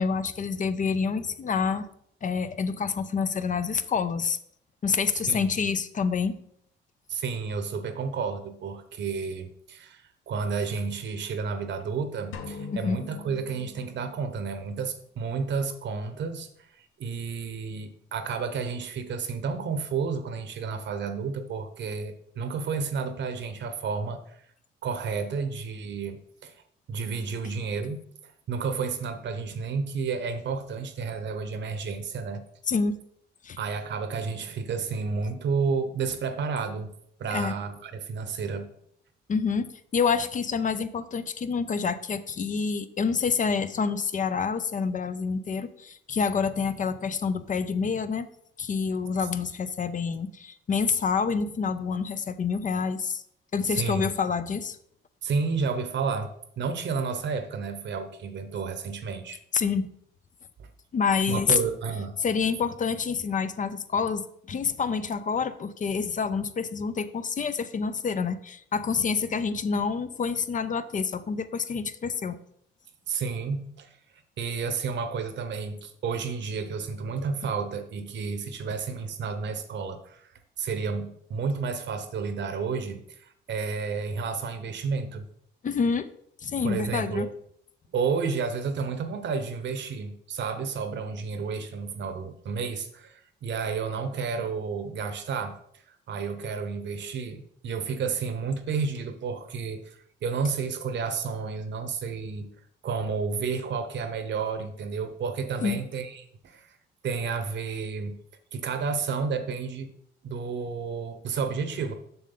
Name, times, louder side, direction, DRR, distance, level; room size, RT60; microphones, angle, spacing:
voice 1, 0.0-1.9 2.2-4.4 4.8-6.4 12.7-13.0 32.7-33.0 33.4-33.6 37.3-37.5 39.3-48.3 48.6-53.2 53.5-54.8 59.5-59.9 60.9-61.6 62.2-72.4 85.6-86.1 86.4-87.3 105.6-105.8, left 5 dB, 40° left, 12 dB, 0.6 m, -27 dB
voice 2, 7.1-24.4 24.8-26.6 26.9-32.4 33.6-36.9 37.2-38.7 53.7-54.1 55.2-56.3 56.6-59.4 60.6-60.7 61.3-62.1 73.1-74.0 74.4-85.3 86.6-87.3 87.9-95.6 95.9-102.5 102.8-106.8 107.0-108.2 108.5-109.9 110.2-111.9, right 5 dB, 65° right, 9 dB, 1.1 m, -31 dB
sound 1, 12.3-14.4, left 3 dB, 80° left, 1.1 m, -41 dB
6.9 x 6.4 x 4.0 m, 0.67 s
cardioid pair, 90°, 20 cm